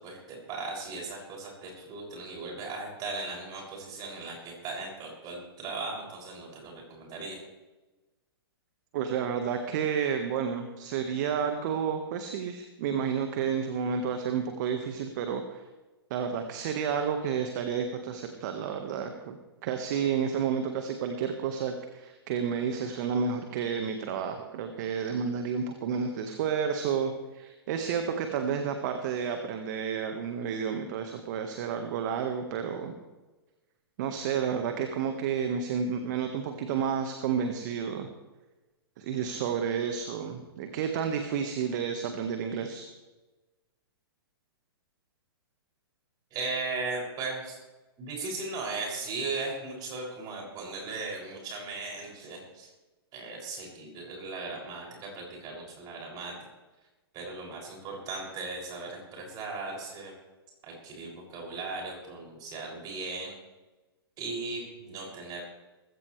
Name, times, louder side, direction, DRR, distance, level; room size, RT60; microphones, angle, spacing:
voice 1, 0.0-7.4 46.3-47.6 48.0-52.7 53.1-56.3 57.1-60.1 60.6-63.3 64.2-65.4, right 3 dB, 30° right, -1 dB, 6.9 m, -37 dB
voice 2, 8.9-15.6 16.1-32.9 34.0-38.1 39.0-42.9, right 7 dB, 45° right, 6 dB, 1.6 m, -31 dB
19.5 x 16.0 x 3.4 m, 1.1 s
figure-of-eight pair, 115°, 13 cm